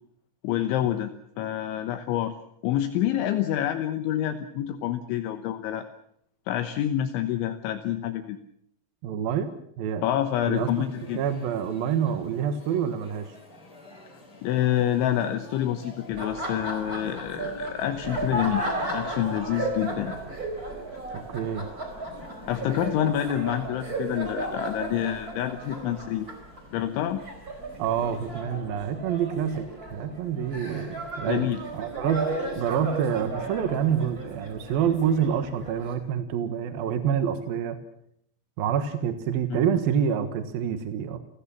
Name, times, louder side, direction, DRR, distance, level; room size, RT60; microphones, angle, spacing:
voice 1, 0.4-1.1 1.4-2.4 2.6-5.9 6.5-8.4 10.0-11.2 14.4-20.1 22.5-26.3 26.7-27.2 31.3-31.6 39.6-39.7, left 11 dB, 75° left, 8 dB, 3.3 m, -27 dB
voice 2, 9.0-9.5 9.8-10.0 10.4-10.7 11.1-13.3 21.3-21.7 27.8-32.3 32.5-37.8 38.6-41.2, right 8 dB, 65° right, 8 dB, 2.6 m, -27 dB
sound 1, 10.5-28.4, left 1 dB, 25° left, 6.2 m, -49 dB
Laughter, 16.1-35.9, right 2 dB, 20° right, 4.4 m, -35 dB
30.0 x 17.5 x 7.2 m, 0.71 s
omnidirectional pair, 5.8 m